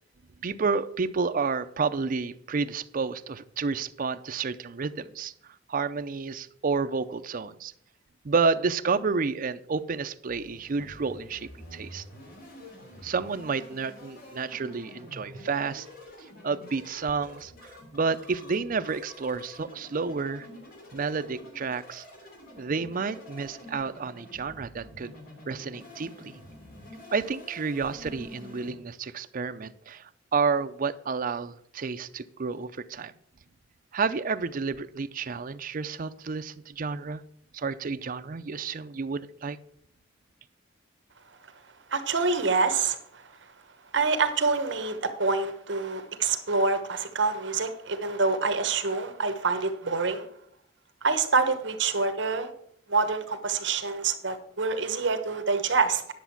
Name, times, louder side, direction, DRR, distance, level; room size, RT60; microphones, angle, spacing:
voice 1, 0.4-5.3 5.7-7.7 8.2-12.0 13.0-15.9 16.4-20.5 20.9-22.0 22.6-25.1 25.5-26.4 27.1-33.1 33.9-37.2 37.5-39.6, right 4 dB, 45° right, 10 dB, 0.5 m, -30 dB
sound 1, 10.3-28.7, left 1 dB, 50° left, 2.9 m, -48 dB
voice 2, 41.9-43.2 43.9-50.2 51.0-52.5 52.9-56.1, right 4 dB, 65° right, 9 dB, 1.1 m, -26 dB
10.5 x 7.1 x 5.8 m, 0.69 s
head